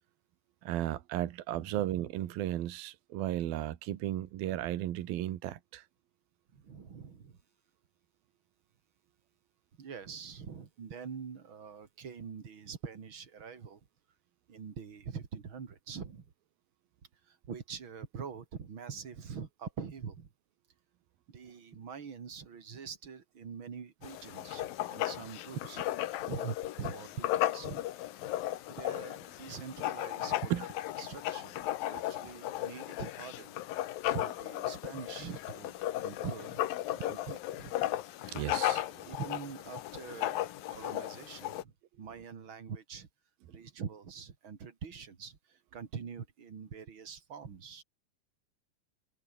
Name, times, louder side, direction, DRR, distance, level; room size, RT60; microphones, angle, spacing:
voice 1, 0.6-5.8 30.5-30.7 38.3-38.9, right 13 dB, 80° right, 3.2 m, -34 dB
voice 2, 6.5-7.4 9.8-13.8 14.5-16.3 17.3-20.3 21.3-25.8 26.2-27.8 28.8-30.6 31.0-33.5 34.1-35.7 36.0-36.6 37.0-37.9 39.0-43.1 43.5-47.8, right 6 dB, 40° right, 2.6 m, -44 dB
Writing, 24.0-41.6, left 14 dB, 75° left, 2.8 m, -36 dB
omnidirectional pair, 4.2 m